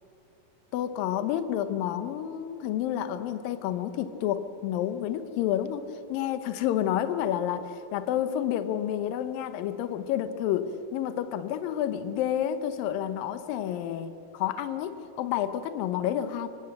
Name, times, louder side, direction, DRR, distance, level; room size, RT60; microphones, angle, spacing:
voice 1, 0.7-16.5, left 10 dB, 80° left, 11 dB, 2.6 m, -30 dB
24.0 x 17.5 x 7.9 m, 2.9 s
omnidirectional pair, 4.0 m